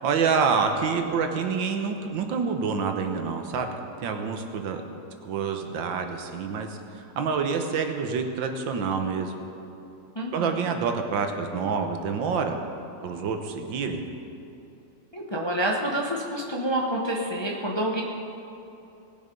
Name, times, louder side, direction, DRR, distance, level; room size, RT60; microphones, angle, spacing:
voice 1, 0.0-3.8 4.0-4.8 5.2-6.8 7.2-9.3 10.3-12.6 13.0-14.0, right 5 dB, 85° right, 5 dB, 1.7 m, -27 dB
voice 2, 10.2-10.6 15.1-18.0, right 1 dB, 20° left, -2 dB, 0.7 m, -28 dB
19.5 x 7.1 x 5.3 m, 2.9 s
omnidirectional pair, 2.0 m